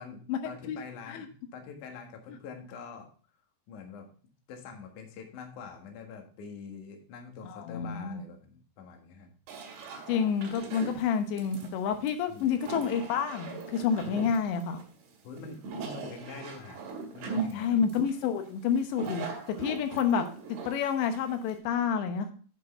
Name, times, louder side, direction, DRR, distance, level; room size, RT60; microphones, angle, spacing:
voice 1, 0.0-3.1 3.7-4.1 4.5-9.3 12.3-12.5 14.1-14.3 15.2-16.8 17.1-17.8, left 5 dB, 55° left, 3 dB, 2.6 m, -45 dB
voice 2, 7.4-8.2 10.1-14.8 17.5-22.3, left 7 dB, 90° left, 7 dB, 3.4 m, -29 dB
sound 1, 9.5-21.6, right 4 dB, 70° right, 4.1 m, -40 dB
9.4 x 6.3 x 4.3 m, 0.41 s
omnidirectional pair, 5.0 m